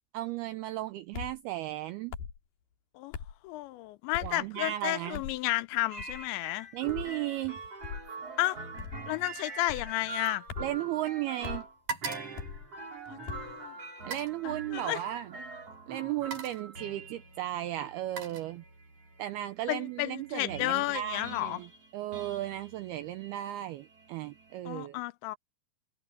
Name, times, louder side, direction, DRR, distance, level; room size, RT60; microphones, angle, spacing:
voice 1, 0.1-2.1 4.2-5.2 6.7-7.6 10.6-11.7 14.0-15.3 15.9-18.6 19.2-25.0, right 14 dB, 85° right, 2.2 m, -35 dB
sound 1, 1.1-1.4 2.1-2.4 3.1-3.4 4.1-4.4 5.1-5.4 6.0-6.3 6.9-7.1 7.8-8.1 8.8-9.1 9.7-9.9 10.5-10.8 11.4-11.6 12.4-12.7 13.3-13.5, left 7 dB, 55° left, 3.9 m, -40 dB
voice 2, 3.4-6.7 8.4-8.6 9.1-10.4 13.1-13.7 14.4-15.0 19.7-21.6 24.7-25.4, left 18 dB, 85° left, 2.9 m, -32 dB
sound 2, 5.9-24.6, right 3 dB, 30° right, 6.6 m, -45 dB
sound 3, 7.4-7.8 8.0-11.2 11.5-13.4 14.0-14.4 15.5-15.6 16.0-16.8 17.6-19.0 19.4-19.7, right 5 dB, 50° right, 6.0 m, -43 dB
omnidirectional pair, 5.3 m